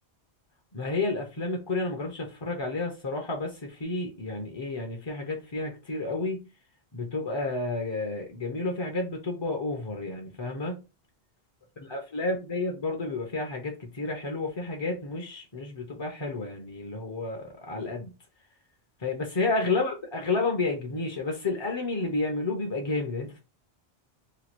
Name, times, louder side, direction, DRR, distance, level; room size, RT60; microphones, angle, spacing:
voice 1, 0.7-6.5 6.9-10.8 11.8-18.1 19.0-23.4, left 3 dB, 35° left, 0.5 m, -31 dB
3.0 x 2.3 x 4.3 m
omnidirectional pair, 1.2 m